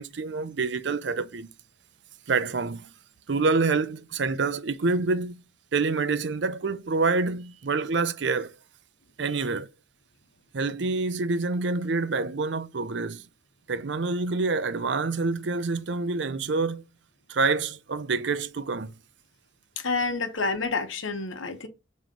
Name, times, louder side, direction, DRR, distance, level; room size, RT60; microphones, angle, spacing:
voice 1, 0.0-1.5 2.3-2.9 3.3-5.4 5.7-8.6 9.2-9.7 10.5-13.3 13.7-16.8 17.3-18.9, right 4 dB, 65° right, 0.6 m, -27 dB
voice 2, 19.8-21.7, left 4 dB, 90° left, 1.1 m, -28 dB
7.5 x 3.2 x 5.1 m
head